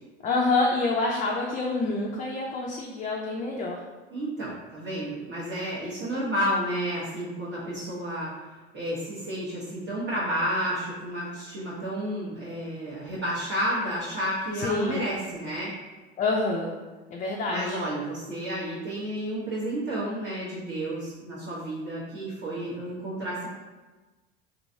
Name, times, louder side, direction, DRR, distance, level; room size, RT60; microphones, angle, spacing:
voice 1, 0.2-3.8 14.6-15.1 16.2-16.8 17.1-17.8, left 3 dB, 25° left, -1 dB, 0.4 m, -27 dB
voice 2, 4.1-8.3 8.7-15.7 17.5-23.5, equal, 40° right, -8 dB, 1.0 m, -31 dB
3.0 x 2.6 x 2.7 m, 1.2 s
hypercardioid pair, 80°, 32 cm